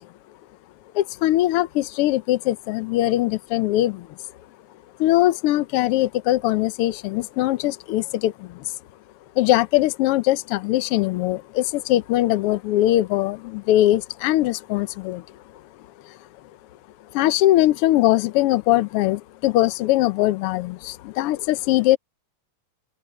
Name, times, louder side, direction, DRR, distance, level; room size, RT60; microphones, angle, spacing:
voice 1, 0.9-4.1 5.0-8.5 9.4-15.2 17.1-22.0, left 15 dB, 85° left, 1.3 m, -21 dB
open air
omnidirectional pair, 3.4 m